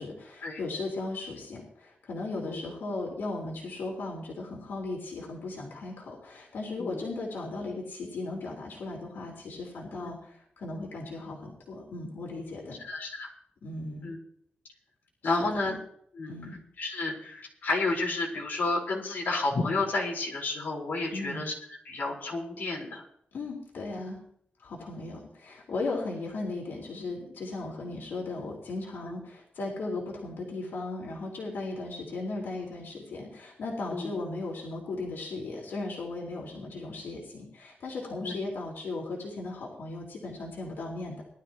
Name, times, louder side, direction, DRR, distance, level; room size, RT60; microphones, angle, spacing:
voice 1, 0.0-12.8 13.6-14.1 15.2-15.8 16.3-16.6 21.1-21.4 23.3-24.2 24.6-41.2, left 2 dB, 80° left, -3 dB, 3.8 m, -37 dB
voice 2, 12.8-13.3 14.0-14.2 15.2-15.8 16.1-16.4 16.8-21.5 21.8-23.0 33.9-34.1 38.2-38.3, left 3 dB, 60° left, -3 dB, 4.6 m, -31 dB
20.5 x 12.5 x 3.1 m, 0.66 s
wide cardioid pair, 175°, 3 cm